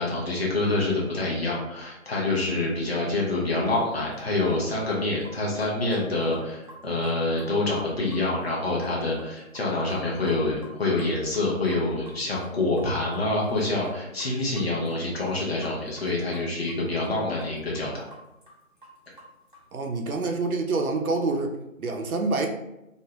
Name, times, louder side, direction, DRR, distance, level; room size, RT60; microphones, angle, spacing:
voice 1, 0.0-18.0, left 2 dB, 45° left, -4 dB, 0.7 m, -26 dB
sound 1, 3.7-4.6 4.9-10.4 10.6-10.7 11.0-16.8 17.0-19.8, equal, 40° right, 0.6 m, -48 dB
voice 2, 19.7-22.5, right 3 dB, 90° right, 3 dB, 0.6 m, -27 dB
2.6 x 2.2 x 2.8 m, 0.90 s
figure-of-eight pair, 175°, 41 cm